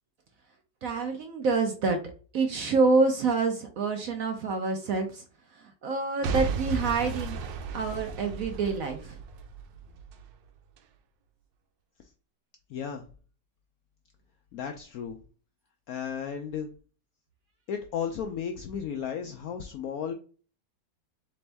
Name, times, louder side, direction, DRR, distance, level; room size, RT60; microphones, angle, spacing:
voice 1, 0.8-2.0 2.3-5.2 5.8-7.4 7.7-9.2, right 4 dB, 65° right, 4 dB, 0.9 m, -27 dB
Boom / Shatter / Crushing, 6.2-10.2 10.8-10.9, right 4 dB, 85° right, 1.3 m, -34 dB
voice 2, 12.7-13.0 14.5-15.2 15.9-16.7 17.7-20.1, left 7 dB, 75° left, 4 dB, 0.8 m, -34 dB
4.0 x 3.4 x 3.3 m, 0.38 s
omnidirectional pair, 2.0 m